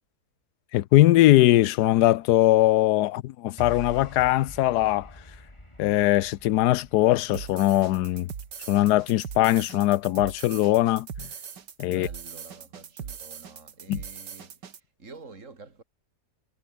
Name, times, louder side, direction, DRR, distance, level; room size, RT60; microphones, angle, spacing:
voice 1, 0.7-5.1 5.8-8.3 8.7-11.3 11.8-12.1 13.9-14.0, left 15 dB, 75° left, 1.1 m, -21 dB
sound 1, 3.6-10.0, left 1 dB, 15° left, 5.2 m, -46 dB
sound 2, 7.3-14.8, right 7 dB, 85° right, 2.3 m, -40 dB
voice 2, 11.9-15.8, right 4 dB, 45° right, 3.7 m, -48 dB
omnidirectional pair, 1.8 m